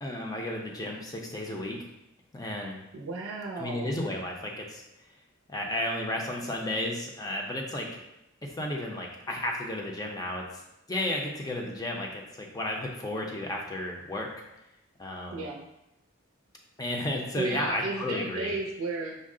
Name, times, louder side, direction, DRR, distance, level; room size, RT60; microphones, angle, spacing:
voice 1, 0.0-1.8 2.3-2.8 3.6-4.8 5.5-8.0 8.6-10.4 10.9-14.3 15.0-15.4 16.8-18.5, left 1 dB, 20° left, 0 dB, 0.5 m, -33 dB
voice 2, 2.9-3.9 15.3-15.7 17.4-19.2, right 3 dB, 85° right, -1 dB, 0.5 m, -34 dB
5.4 x 2.0 x 3.7 m, 0.90 s
head